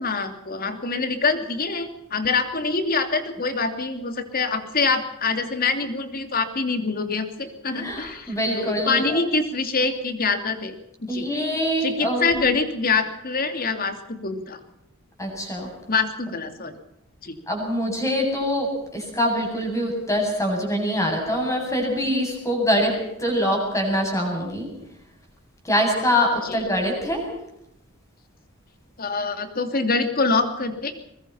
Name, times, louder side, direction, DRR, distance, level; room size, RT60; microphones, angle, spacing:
voice 1, 0.0-10.8 11.1-11.3 11.8-14.6 15.9-16.8 17.2-17.3 26.4-26.7 29.0-30.9, left 4 dB, 45° left, 7 dB, 2.9 m, -25 dB
voice 2, 7.7-9.2 11.1-12.3 15.2-15.7 17.5-24.7 25.6-27.2, equal, 15° left, 1 dB, 7.9 m, -24 dB
23.0 x 21.5 x 5.7 m, 0.83 s
head